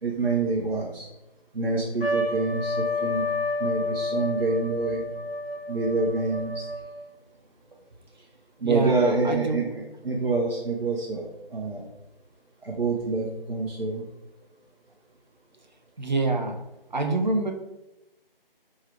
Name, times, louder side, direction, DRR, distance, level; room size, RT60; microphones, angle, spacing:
voice 1, 0.0-1.1 1.5-3.2 3.6-5.0 5.7-6.7 8.6-11.3 11.5-11.8 12.6-14.0, right 3 dB, 85° right, -2 dB, 0.8 m, -27 dB
Trumpet, 2.0-7.0, left 2 dB, 85° left, 0.7 m, -30 dB
voice 2, 8.6-9.6 16.0-16.6 16.9-17.5, right 3 dB, 50° right, 4 dB, 0.6 m, -26 dB
4.8 x 2.7 x 3.3 m, 0.94 s
figure-of-eight pair, 165°, 29 cm